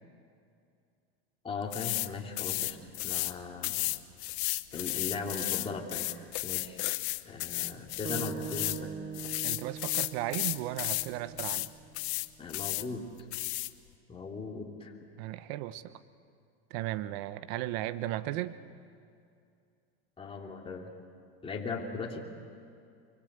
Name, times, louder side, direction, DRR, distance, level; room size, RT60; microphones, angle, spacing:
voice 1, 1.4-2.8 3.0-3.9 4.7-6.8 7.2-8.9 12.4-13.1 14.1-14.9 20.2-20.9 21.4-22.2, left 4 dB, 15° left, -1 dB, 3.2 m, -38 dB
sound 1, 1.7-2.1 2.4-3.3 3.6-8.8 9.1-11.1 11.4-11.7 11.9-12.9 13.3-13.7, left 20 dB, 70° left, 1.0 m, -33 dB
sound 2, 8.0-12.3, right 7 dB, 20° right, 0.8 m, -43 dB
voice 2, 9.4-11.7 15.2-15.9 16.7-18.6, right 15 dB, 65° right, 14 dB, 1.1 m, -35 dB
25.0 x 24.0 x 8.3 m, 2.4 s
supercardioid pair, 115°, 34 cm